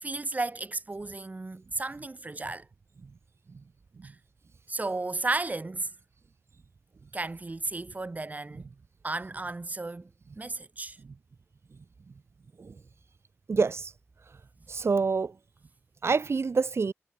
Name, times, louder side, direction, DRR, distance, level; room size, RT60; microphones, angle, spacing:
voice 1, 0.0-2.6 4.0-4.1 4.7-5.9 7.1-8.6 9.0-10.1 10.4-11.0, right 2 dB, 35° right, 2.7 m, -33 dB
voice 2, 13.5-13.9 14.7-15.3 16.0-16.9, right 4 dB, 60° right, 3.7 m, -27 dB
wide cardioid pair, 85°, 5 cm